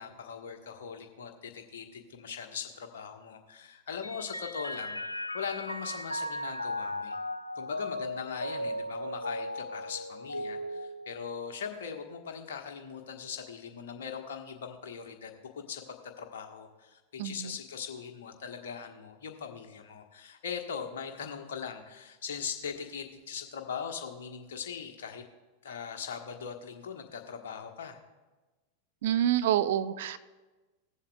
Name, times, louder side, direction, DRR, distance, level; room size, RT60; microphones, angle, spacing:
voice 1, 0.0-5.0 5.3-7.2 7.5-15.8 16.2-25.2 25.6-28.0, left 6 dB, 60° left, 3 dB, 1.3 m, -40 dB
Mallet percussion, 4.0-11.8, left 1 dB, 85° left, 0.3 m, -37 dB
voice 2, 17.2-17.5 29.0-30.2, right 11 dB, 55° right, 13 dB, 0.4 m, -27 dB
20.5 x 7.2 x 2.3 m, 1.2 s
figure-of-eight pair, 90°, 0 cm